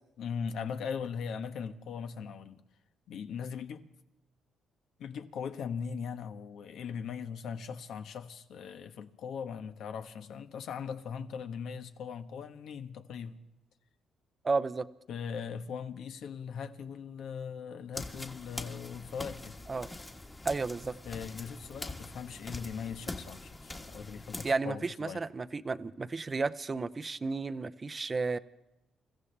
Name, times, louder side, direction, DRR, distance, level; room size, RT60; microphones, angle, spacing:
voice 1, 0.2-2.6 3.1-3.9 5.0-13.4 15.1-19.6 21.0-25.2, left 6 dB, 75° left, 1.2 m, -39 dB
voice 2, 14.4-14.9 19.7-19.9 20.4-21.0 24.4-28.4, right 4 dB, 30° right, 0.6 m, -32 dB
sound 1, 17.9-24.5, left 2 dB, 20° left, 1.5 m, -43 dB
29.0 x 15.0 x 3.4 m
cardioid pair, 90°, 0 cm